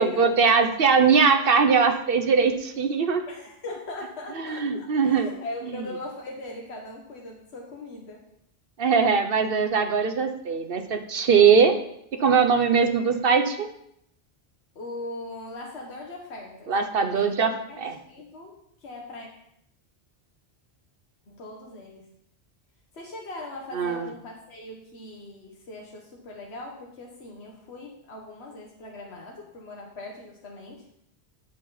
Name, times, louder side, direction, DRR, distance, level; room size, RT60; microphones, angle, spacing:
voice 1, 0.0-3.2 4.4-5.3 8.8-11.8 12.2-13.7 16.7-17.5 17.8-17.9 23.7-24.1, right 5 dB, 55° right, 7 dB, 1.1 m, -21 dB
voice 2, 3.3-8.2 14.7-17.8 18.1-19.3 21.3-22.1 22.9-30.8, left 2 dB, 70° left, -1 dB, 1.6 m, -40 dB
16.0 x 5.6 x 4.1 m, 0.74 s
omnidirectional pair, 1.1 m